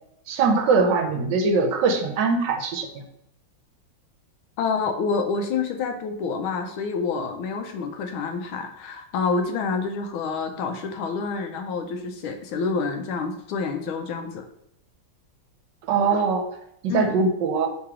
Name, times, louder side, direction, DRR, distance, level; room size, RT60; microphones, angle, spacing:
voice 1, 0.3-2.9 15.9-16.5 16.8-17.7, right 4 dB, 70° right, 4 dB, 1.2 m, -21 dB
voice 2, 4.6-14.4 16.9-17.2, left 4 dB, 80° left, 5 dB, 1.4 m, -28 dB
3.7 x 3.0 x 4.8 m, 0.76 s
omnidirectional pair, 2.2 m